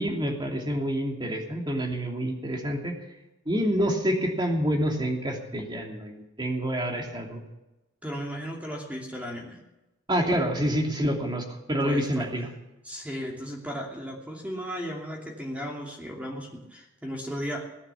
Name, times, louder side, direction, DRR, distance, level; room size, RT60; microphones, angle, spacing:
voice 1, 0.0-2.9 3.5-7.4 10.1-12.5, equal, 25° right, 2 dB, 2.7 m, -27 dB
voice 2, 8.0-9.6 11.8-12.3 12.8-17.7, equal, 5° right, -1 dB, 2.7 m, -35 dB
19.0 x 11.0 x 7.1 m, 0.98 s
head